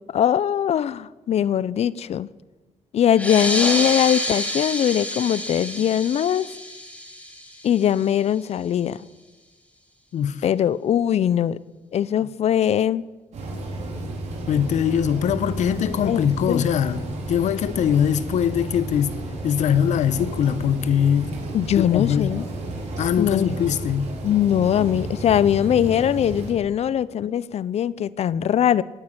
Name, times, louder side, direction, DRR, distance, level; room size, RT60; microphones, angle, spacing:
voice 1, 0.1-2.3 2.9-6.5 7.6-9.0 10.4-11.6 11.9-13.0 16.0-16.2 16.5-16.6 21.5-22.5 23.2-23.5 24.2-28.8, left 10 dB, 60° left, 0.6 m, -21 dB
sound 1, 3.1-8.2, left 1 dB, 10° left, 3.9 m, -28 dB
voice 2, 10.1-10.4 14.5-19.2 19.4-21.3 21.8-22.4 23.0-24.1, left 8 dB, 80° left, 0.9 m, -22 dB
sound 2, 13.3-26.5, right 2 dB, 70° right, 4.7 m, -32 dB
17.5 x 9.5 x 8.8 m
cardioid pair, 105°, 12 cm